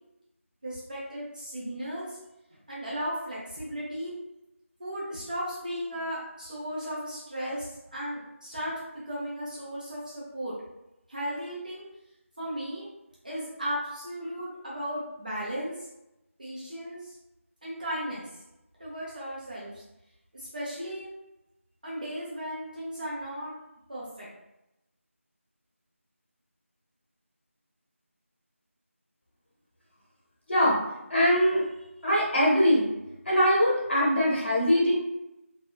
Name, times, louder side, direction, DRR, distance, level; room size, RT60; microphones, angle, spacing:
voice 1, 0.6-2.2 2.7-4.1 4.8-8.7 9.1-10.5 11.1-11.8 12.4-12.9 13.2-15.9 16.4-17.2 17.6-18.3 18.8-19.8 20.3-21.1 21.8-23.5 23.9-24.3, equal, 35° right, -7 dB, 0.6 m, -35 dB
voice 2, 30.5-30.8 31.1-31.6 32.0-32.9 33.3-35.0, equal, 50° left, -5 dB, 0.9 m, -22 dB
2.7 x 2.2 x 2.3 m, 0.91 s
figure-of-eight pair, 170°, 8 cm